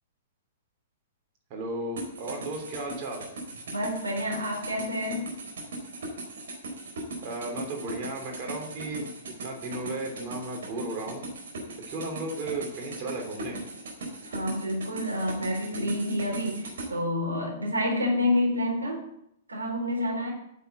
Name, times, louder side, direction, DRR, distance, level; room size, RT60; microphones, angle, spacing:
voice 1, 1.5-3.2 7.2-9.1 9.4-11.2 11.9-13.6, right 2 dB, 35° right, 1 dB, 3.2 m, -34 dB
sound 1, 2.0-16.9, right 2 dB, 60° right, 4.5 m, -39 dB
voice 2, 3.7-5.4 14.2-19.0 19.5-20.3, left 1 dB, 80° right, 0 dB, 4.1 m, -28 dB
9.6 x 7.8 x 8.2 m, 0.78 s
figure-of-eight pair, 105°, 0 cm